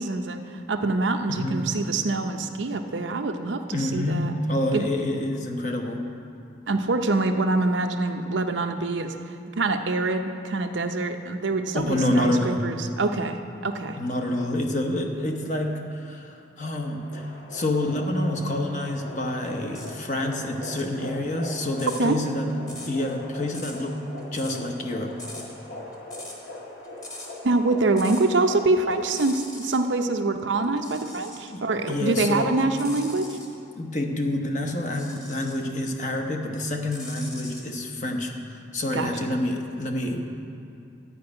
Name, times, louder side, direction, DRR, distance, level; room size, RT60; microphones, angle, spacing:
voice 1, 0.0-4.3 4.7-4.8 6.7-9.1 9.6-14.0 22.0-22.2 27.4-33.3 38.9-39.1, right 3 dB, 70° right, 6 dB, 0.6 m, -25 dB
voice 2, 1.3-1.7 3.7-6.1 11.7-12.8 14.0-25.2 31.5-32.6 33.8-40.2, left 1 dB, 40° left, 2 dB, 0.9 m, -28 dB
sound 1, 16.9-29.1, left 1 dB, 60° left, 1.7 m, -41 dB
sound 2, 19.7-20.0 20.5-28.3 28.6-29.9 30.6-31.5 32.0-33.5 34.9-35.7 36.1-37.7, left 2 dB, 20° left, 1.4 m, -42 dB
11.5 x 5.4 x 8.6 m, 2.6 s
head